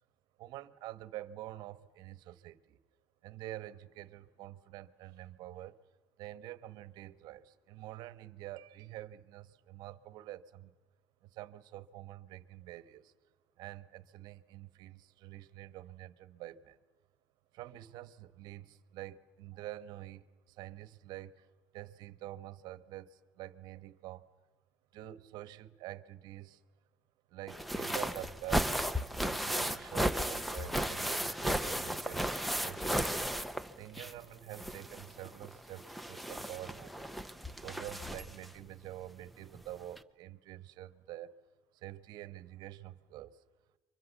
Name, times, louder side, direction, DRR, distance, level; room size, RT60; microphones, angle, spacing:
voice 1, 0.4-2.8 3.2-5.8 6.2-10.7 11.3-13.1 13.6-16.8 17.5-21.4 21.7-23.1 23.4-24.2 24.9-26.6 27.3-28.7 29.1-33.0 33.8-37.1 37.6-41.3 41.8-43.4, right 14 dB, 65° right, 15 dB, 1.2 m, -47 dB
sound 1, 27.5-34.2 34.5-38.5 39.5-39.6 40.0-40.1, equal, ahead, 0.9 m, -35 dB
29.0 x 24.5 x 7.2 m, 1.3 s
cardioid pair, 135°, 8 cm